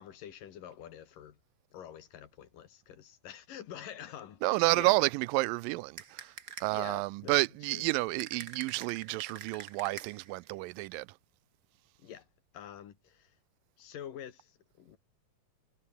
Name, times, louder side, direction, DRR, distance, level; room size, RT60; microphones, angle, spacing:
voice 1, 0.0-1.4 1.7-4.9 6.7-7.4 7.7-7.8 12.0-12.3 12.5-13.3 13.8-15.0, left 10 dB, 75° left, 3.5 m, -47 dB
voice 2, 4.4-6.3 6.6-11.1, right 22 dB, 90° right, 2.3 m, -30 dB
sound 1, 6.0-6.9 8.2-10.4, right 7 dB, 40° right, 1.4 m, -46 dB
omnidirectional pair, 3.9 m